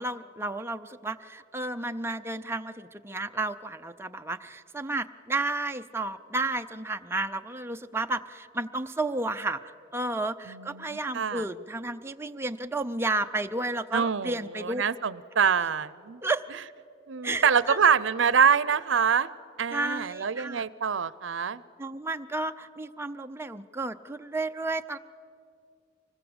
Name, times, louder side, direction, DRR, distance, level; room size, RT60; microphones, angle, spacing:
voice 1, 0.0-9.6 9.9-14.8 16.2-16.4 17.2-17.8 19.7-20.6 21.8-25.0, right 2 dB, 15° right, 7 dB, 0.6 m, -32 dB
voice 2, 10.5-11.5 13.9-16.2 17.1-19.3 19.6-21.6, right 6 dB, 75° right, 18 dB, 0.6 m, -25 dB
25.0 x 20.0 x 8.0 m, 2.4 s
head